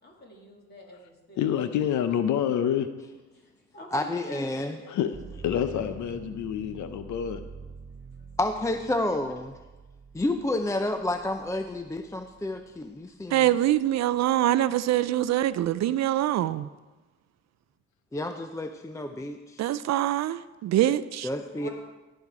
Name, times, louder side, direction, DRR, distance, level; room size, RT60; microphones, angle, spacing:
voice 1, 0.0-1.6 3.3-5.2 21.5-21.7, left 1 dB, 35° left, -1 dB, 2.9 m, -47 dB
voice 2, 1.4-2.9 4.9-5.1 5.4-7.4, left 9 dB, 75° left, 10 dB, 0.7 m, -27 dB
voice 3, 3.9-4.8 8.4-9.5 10.1-13.5 18.1-19.7 21.2-21.7, left 1 dB, 10° left, 6 dB, 0.5 m, -30 dB
sound 1, 5.1-12.9 13.4-14.2, right 4 dB, 30° right, 1.7 m, -47 dB
voice 4, 13.3-16.7 19.6-21.3, right 13 dB, 60° right, 15 dB, 0.4 m, -24 dB
16.0 x 5.5 x 4.8 m, 1.2 s
cardioid pair, 90°, 30 cm